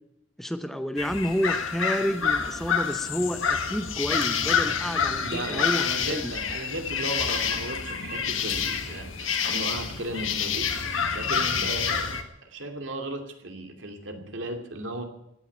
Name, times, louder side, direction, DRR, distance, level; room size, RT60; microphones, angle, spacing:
voice 1, 0.4-6.3, equal, ahead, 9 dB, 0.8 m, -30 dB
sound 1, 1.0-12.2, left 6 dB, 90° left, 1.9 m, -28 dB
sound 2, 2.3-3.0 3.4-4.4 5.1-5.2 6.8-6.9 7.3-8.0 9.4-10.3 11.4-11.5, left 3 dB, 60° left, 5.2 m, -44 dB
voice 2, 5.2-10.7 11.1-15.0, right 1 dB, 70° right, 4 dB, 2.6 m, -35 dB
17.0 x 10.0 x 8.5 m, 0.82 s
head